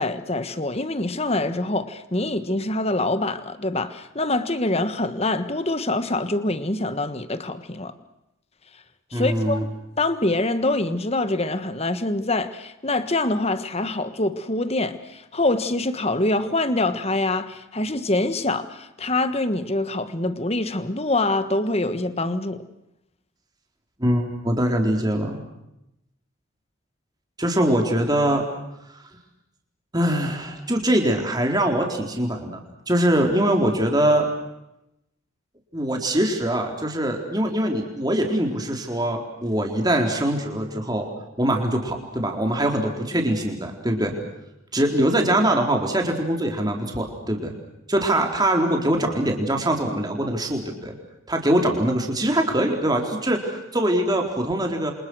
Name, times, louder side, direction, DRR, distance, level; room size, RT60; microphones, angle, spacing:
voice 1, 0.0-7.9 9.1-9.7 10.0-22.6, left 2 dB, 30° left, 1.5 m, -25 dB
voice 2, 9.1-9.6 24.0-25.4 27.4-28.4 28.9-29.0 29.9-32.6 32.9-34.3 35.7-41.1 41.4-44.1 44.7-47.5 47.9-50.9 51.3-54.9, right 1 dB, 20° right, 4.1 m, -23 dB
28.5 x 26.5 x 6.4 m
head